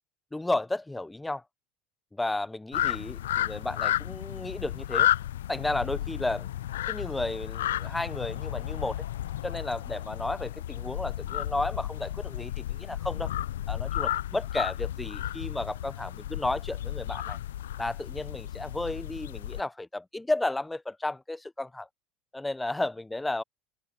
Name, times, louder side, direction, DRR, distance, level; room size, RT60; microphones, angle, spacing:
voice 1, 0.3-1.4 2.1-5.1 5.5-6.5 6.9-9.0 9.4-13.3 13.7-17.4 17.8-21.9 22.3-23.4, left 2 dB, 10° left, 0.5 m, -33 dB
sound 1, 2.7-19.6, left 12 dB, 85° left, 0.4 m, -32 dB
open air
hypercardioid pair, 85°, 0 cm